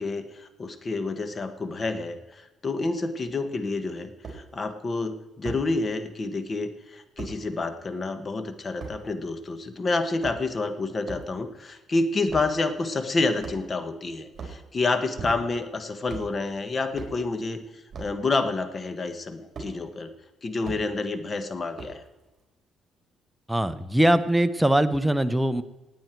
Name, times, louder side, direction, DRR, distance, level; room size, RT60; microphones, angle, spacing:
voice 1, 0.0-20.1 20.4-22.0, left 3 dB, 35° left, 10 dB, 1.3 m, -29 dB
sound 1, 4.2-4.4 5.4-5.6 7.2-7.3 8.8-9.0 10.0-10.6 11.0-11.3 12.3-12.5 13.4-13.8 14.3-14.6 15.2-15.6 16.0-16.3 16.9-17.2 17.9-18.2 19.5-19.7 20.6-20.8 21.8-22.1, right 4 dB, 45° right, 3.9 m, -38 dB
voice 2, 23.5-25.6, right 1 dB, 5° right, 11 dB, 0.8 m, -22 dB
17.0 x 9.4 x 4.6 m, 1.1 s
cardioid pair, 90°, 0 cm